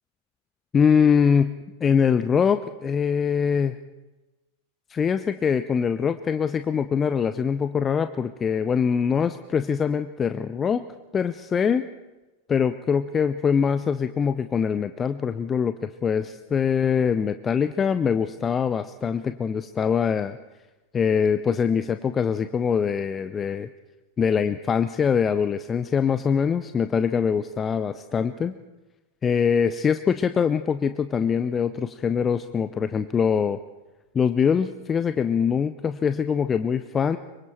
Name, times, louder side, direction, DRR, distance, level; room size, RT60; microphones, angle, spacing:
voice 1, 0.7-1.5 1.8-3.8 4.9-10.8 11.1-11.9 12.5-20.4 20.9-23.7 24.2-28.5 29.2-33.6 34.1-37.2, left 6 dB, 20° left, 12 dB, 0.7 m, -23 dB
25.5 x 24.0 x 4.5 m, 1.1 s
figure-of-eight pair, 90°, 0 cm